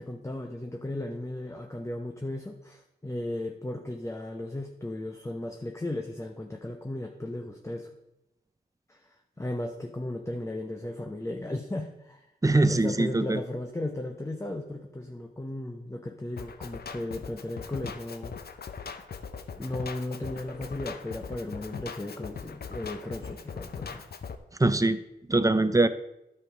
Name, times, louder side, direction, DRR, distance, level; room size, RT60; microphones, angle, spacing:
voice 1, 0.0-7.9 8.9-12.2 12.6-18.3 19.6-24.1, left 1 dB, 15° left, 4 dB, 0.9 m, -36 dB
voice 2, 12.4-13.4 24.6-25.0 25.3-25.9, right 2 dB, 20° right, 12 dB, 0.7 m, -22 dB
Drum kit, 16.4-24.4, left 6 dB, 60° left, 0.8 m, -40 dB
9.8 x 6.5 x 5.0 m, 0.88 s
cardioid pair, 50°, 18 cm